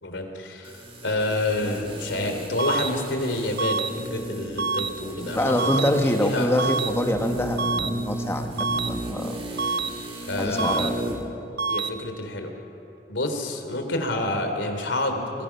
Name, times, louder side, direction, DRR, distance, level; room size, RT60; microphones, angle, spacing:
voice 1, 0.0-0.8 1.0-5.9 6.2-6.5 10.3-10.9 11.7-12.5 13.1-15.4, left 1 dB, 80° left, 5 dB, 3.1 m, -28 dB
sound 1, 0.6-11.3 11.6-11.7, right 1 dB, 30° right, 2.5 m, -34 dB
sound 2, 2.6-2.9 3.6-3.9 4.6-4.9 5.6-5.9 6.6-6.9 7.6-7.9 8.6-8.9 9.6-9.9 10.6-10.9 11.6-11.9, right 4 dB, 60° right, 0.7 m, -26 dB
voice 2, 5.3-9.4 10.4-11.0, left 1 dB, 15° left, 4 dB, 1.5 m, -25 dB
25.0 x 22.5 x 5.9 m, 3.0 s
head